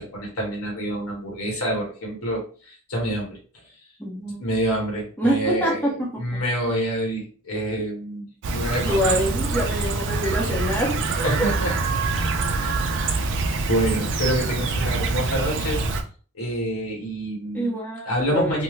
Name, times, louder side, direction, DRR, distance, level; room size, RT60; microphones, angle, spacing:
voice 1, 0.0-3.4 4.2-9.2 11.2-11.8 12.2-12.3 12.6-13.2 13.7-15.8 16.3-17.8 18.1-18.6, right 1 dB, 70° left, -1 dB, 1.4 m, -27 dB
voice 2, 4.0-4.5 5.2-6.1 8.9-11.3 17.5-18.6, equal, 10° left, -3 dB, 0.7 m, -25 dB
Chirp tweet, 8.4-16.0, right 3 dB, 60° right, 0.5 m, -25 dB
3.4 x 2.1 x 3.2 m, 0.39 s
head